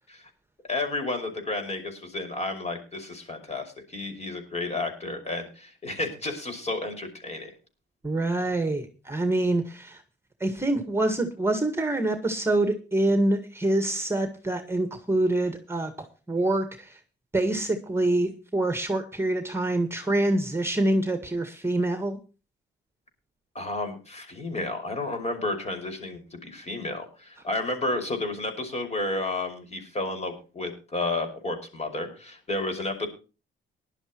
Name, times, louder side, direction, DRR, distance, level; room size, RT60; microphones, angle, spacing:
voice 1, 0.7-7.5 23.5-33.1, left 2 dB, 35° left, 5 dB, 5.9 m, -31 dB
voice 2, 8.0-10.0 10.4-17.0 17.3-22.2, right 1 dB, 10° right, 8 dB, 1.8 m, -26 dB
19.5 x 11.5 x 3.1 m, 0.33 s
cardioid pair, 90°, 20 cm